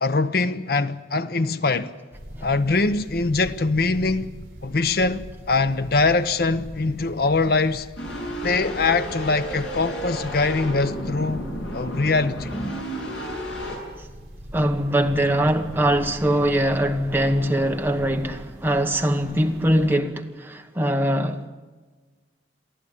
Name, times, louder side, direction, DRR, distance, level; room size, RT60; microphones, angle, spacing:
voice 1, 0.0-1.9 2.4-4.3 4.6-7.9 8.4-11.5 11.7-12.5, left 3 dB, 55° left, 0.7 m, -23 dB
sound 1, 2.1-19.9, equal, 50° right, 4.0 m, -41 dB
sound 2, 8.0-13.8, equal, 75° left, 7.0 m, -32 dB
voice 2, 14.5-21.5, right 1 dB, 10° right, 1.2 m, -22 dB
23.5 x 15.0 x 9.9 m
head